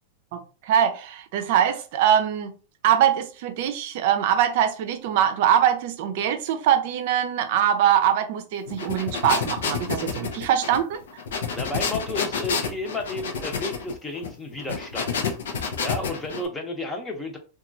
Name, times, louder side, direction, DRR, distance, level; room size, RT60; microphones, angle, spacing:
voice 1, 0.3-2.5 2.8-11.2, right 10 dB, 60° right, 0.5 m, -23 dB
sound 1, 8.7-16.5, left 5 dB, 80° left, 0.6 m, -29 dB
voice 2, 11.5-17.4, left 2 dB, 15° left, 0.8 m, -32 dB
2.9 x 2.4 x 2.6 m
hypercardioid pair, 120°, 0 cm